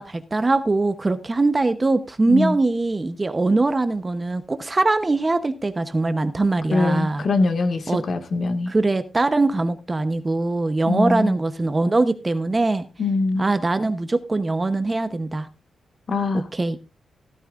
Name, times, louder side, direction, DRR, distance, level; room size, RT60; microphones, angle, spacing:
voice 1, 0.0-7.2 7.9-8.0 8.7-12.8 13.4-15.5 16.5-16.8, right 2 dB, 20° right, 0.8 m, -22 dB
voice 2, 6.7-8.7 10.9-11.4 13.0-13.4 16.1-16.5, left 3 dB, 50° left, 1.8 m, -22 dB
15.5 x 13.0 x 2.5 m
wide cardioid pair, 130°, 0 cm